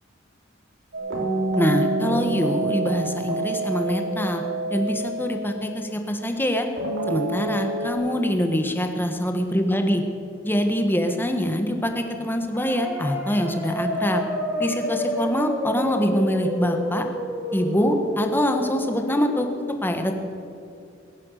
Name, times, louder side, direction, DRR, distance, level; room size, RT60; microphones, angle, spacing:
sound 1, 0.9-6.0 6.8-7.9, right 2 dB, 65° right, 3.7 m, -28 dB
voice 1, 1.5-4.4 4.7-6.7 7.1-10.0 10.4-14.2 14.6-17.0 17.5-19.5 19.8-20.1, equal, 10° left, 4 dB, 1.5 m, -24 dB
sound 2, 12.6-19.4, equal, 10° right, 3.0 m, -29 dB
20.0 x 10.5 x 6.6 m, 2.6 s
head